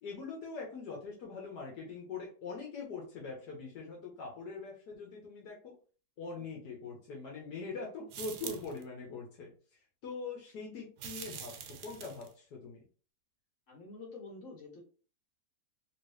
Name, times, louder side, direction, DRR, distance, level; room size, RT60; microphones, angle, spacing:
voice 1, 0.0-5.8 6.2-9.5 10.0-12.8, left 4 dB, 80° left, -1 dB, 1.4 m, -43 dB
sound 1, 8.1-8.8 11.0-12.3, right 8 dB, 90° right, 1.2 m, -44 dB
voice 2, 13.7-14.8, left 3 dB, 50° left, -2 dB, 1.7 m, -48 dB
3.0 x 2.9 x 3.1 m, 0.39 s
omnidirectional pair, 1.7 m